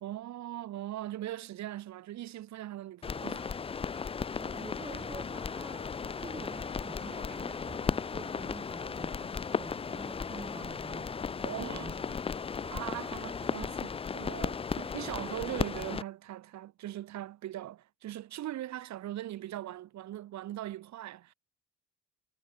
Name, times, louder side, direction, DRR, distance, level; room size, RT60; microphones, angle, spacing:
voice 1, 0.0-3.5 11.4-12.0 12.6-21.3, right 13 dB, 65° right, 0.9 m, -40 dB
sound 1, 3.0-16.0, left 5 dB, 20° left, 0.4 m, -36 dB
sound 2, 3.8-12.0 12.3-13.9 14.4-15.0, right 5 dB, 35° right, 5.0 m, -57 dB
voice 2, 4.3-5.9 6.2-12.2 14.4-14.5, right 3 dB, 15° right, 0.9 m, -47 dB
cardioid pair, 90°, 30 cm